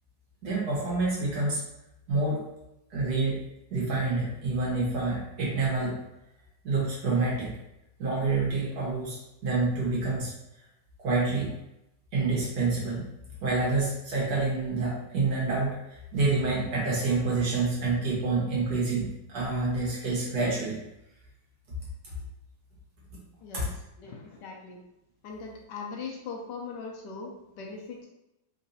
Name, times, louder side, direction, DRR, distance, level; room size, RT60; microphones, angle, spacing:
voice 1, 0.4-1.6 2.1-2.4 2.9-3.4 3.7-6.0 6.6-7.5 8.0-10.3 11.0-11.5 12.1-13.1 13.4-20.8 22.0-22.1 23.5-23.7, right 3 dB, 60° right, -5 dB, 1.6 m, -27 dB
voice 2, 24.0-24.8 25.2-28.1, left 4 dB, 75° left, 0 dB, 1.2 m, -40 dB
3.9 x 2.6 x 2.7 m, 0.87 s
omnidirectional pair, 2.0 m